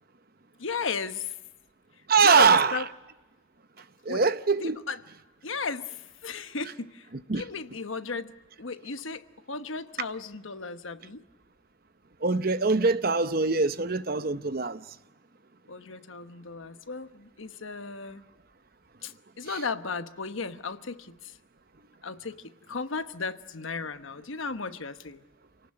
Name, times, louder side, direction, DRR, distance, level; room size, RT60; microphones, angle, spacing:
voice 1, 0.6-1.3 2.2-2.9 4.1-4.2 4.6-5.0 5.4-7.1 7.3-8.3 8.6-11.2 15.7-18.2 19.0-21.4 22.0-25.2, left 4 dB, 75° left, 1.1 m, -35 dB
voice 2, 2.1-2.7 4.1-4.7 7.3-7.4 12.2-14.8, right 4 dB, 45° right, 0.8 m, -23 dB
28.0 x 18.5 x 9.9 m
head